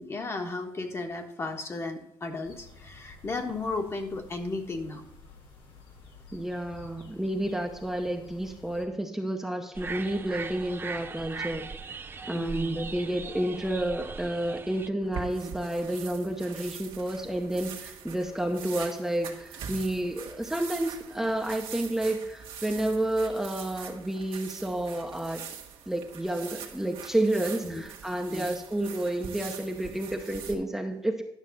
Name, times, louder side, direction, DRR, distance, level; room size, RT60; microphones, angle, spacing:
voice 1, 0.0-5.0 12.3-12.9 27.6-27.8 28.3-28.6, left 3 dB, 30° left, 4 dB, 1.3 m, -34 dB
sound 1, 2.4-8.8, left 4 dB, 90° left, 2.0 m, -52 dB
voice 2, 6.3-11.7 12.2-25.4 25.9-31.2, right 1 dB, 5° right, 1 dB, 0.8 m, -30 dB
sound 2, 9.8-14.9, right 4 dB, 25° right, 0.4 m, -39 dB
sound 3, 15.0-30.5, right 7 dB, 85° right, 1.5 m, -43 dB
11.0 x 6.3 x 4.1 m, 0.88 s
cardioid pair, 120°, 9 cm